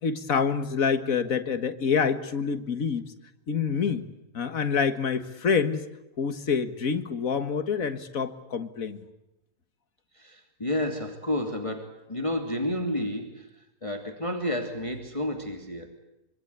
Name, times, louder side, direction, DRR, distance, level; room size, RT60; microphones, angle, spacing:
voice 1, 0.0-3.0 3.5-4.0 4.3-5.8 6.2-9.0, left 6 dB, 60° left, 11 dB, 2.1 m, -27 dB
voice 2, 10.1-13.5 13.8-16.0, left 1 dB, 20° left, 5 dB, 2.8 m, -31 dB
25.5 x 25.0 x 8.3 m, 0.91 s
omnidirectional pair, 1.6 m